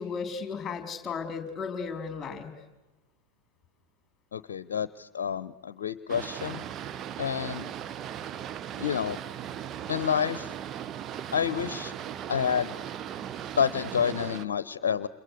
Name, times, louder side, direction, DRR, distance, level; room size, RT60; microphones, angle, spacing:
voice 1, 0.0-2.5, left 5 dB, 20° left, 7 dB, 4.5 m, -35 dB
voice 2, 4.3-6.7 7.2-7.7 8.8-9.2 9.9-10.5 11.3-11.9 12.3-12.7 13.6-15.1, left 7 dB, 60° left, 17 dB, 0.9 m, -29 dB
Boat Water vehicle, 6.1-14.5, right 10 dB, 30° right, 0.9 m, -38 dB
29.5 x 28.0 x 6.6 m, 1.1 s
figure-of-eight pair, 90°, 0 cm